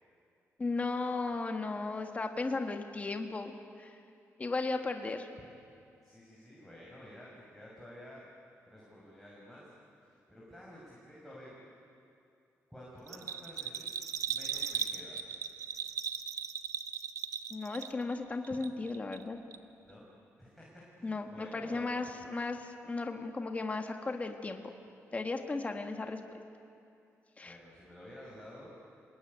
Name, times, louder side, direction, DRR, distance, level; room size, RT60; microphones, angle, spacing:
voice 1, 0.6-3.9 4.4-5.3 17.5-19.4 21.0-24.6 25.1-26.2 27.4-27.6, left 3 dB, 25° left, 4 dB, 1.8 m, -35 dB
voice 2, 1.7-2.1 6.0-8.2 8.7-9.7 10.1-11.6 12.7-14.0 14.3-15.2 19.8-20.0 20.4-21.9 27.4-28.7, equal, ahead, -5 dB, 5.9 m, -52 dB
Bell, 13.1-18.2 18.4-19.2 19.5-19.6, right 7 dB, 80° right, 1.0 m, -37 dB
25.5 x 20.5 x 9.5 m, 2.6 s
cardioid pair, 105°, 6 cm